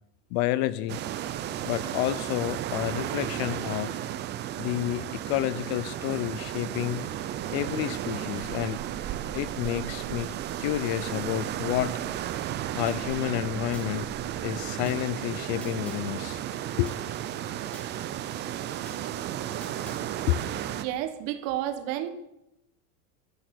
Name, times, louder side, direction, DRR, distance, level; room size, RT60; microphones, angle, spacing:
voice 1, 0.3-1.0 1.6-4.0 4.6-7.1 7.5-8.8 9.3-12.0 12.8-14.1 14.4-16.4 16.8-16.9 20.3-20.4, left 15 dB, 45° left, 17 dB, 0.6 m, -29 dB
sound 1, 0.9-20.8, right 11 dB, 25° right, 0.5 m, -34 dB
sound 2, 12.9-13.9 14.9-16.0 16.9-17.9 18.9-20.0, equal, 5° left, 2.0 m, -50 dB
voice 2, 20.8-22.1, right 12 dB, 50° right, 11 dB, 1.5 m, -31 dB
13.5 x 10.5 x 8.3 m, 0.88 s
supercardioid pair, 160°, 47 cm